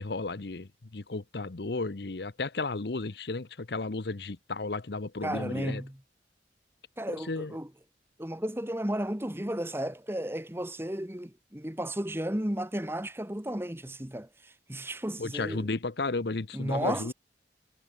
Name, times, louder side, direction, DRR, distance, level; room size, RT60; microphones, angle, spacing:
voice 1, 0.0-5.8 7.2-7.6 15.2-17.1, left 3 dB, 65° left, 0.9 m, -33 dB
voice 2, 5.2-5.9 7.0-7.7 8.2-15.7 16.5-17.1, right 1 dB, 15° right, 1.5 m, -33 dB
head